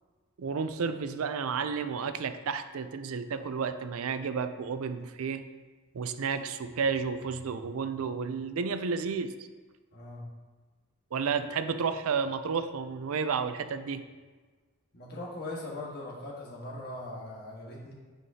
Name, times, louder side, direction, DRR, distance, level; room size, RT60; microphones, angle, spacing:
voice 1, 0.4-5.4 5.9-9.3 11.1-14.0, right 5 dB, 70° right, 11 dB, 0.4 m, -31 dB
voice 2, 9.9-10.2 14.9-17.9, left 2 dB, 45° left, -4 dB, 1.5 m, -40 dB
8.1 x 7.3 x 2.8 m, 1.4 s
head